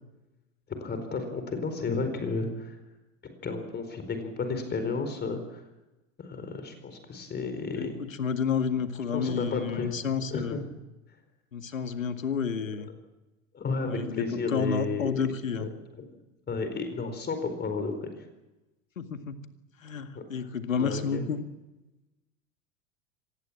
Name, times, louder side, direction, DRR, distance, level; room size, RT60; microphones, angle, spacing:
voice 1, 0.8-2.8 3.4-5.6 6.2-8.0 9.1-10.0 10.3-10.6 13.5-15.1 15.6-15.7 16.0-16.1 16.5-18.2 20.1-20.2 20.7-21.3, left 4 dB, 25° left, 8 dB, 4.5 m, -32 dB
voice 2, 7.7-10.6 11.5-12.9 13.9-15.7 19.0-19.4 19.8-21.4, left 6 dB, 80° left, 9 dB, 2.0 m, -30 dB
25.5 x 19.5 x 7.6 m, 1.0 s
figure-of-eight pair, 80°, 39 cm